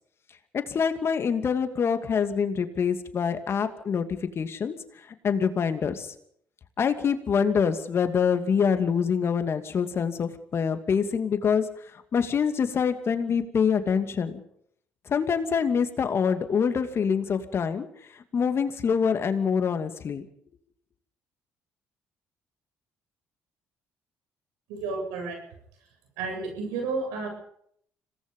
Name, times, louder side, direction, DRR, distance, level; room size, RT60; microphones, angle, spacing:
voice 1, 0.5-4.7 5.2-6.1 6.8-11.6 11.9-14.4 15.1-17.9 18.3-20.2, left 6 dB, 50° left, 8 dB, 2.5 m, -25 dB
voice 2, 24.7-25.4 26.2-27.3, right 4 dB, 90° right, 2 dB, 8.0 m, -31 dB
26.5 x 18.5 x 5.5 m, 0.68 s
supercardioid pair, 70°, 6 cm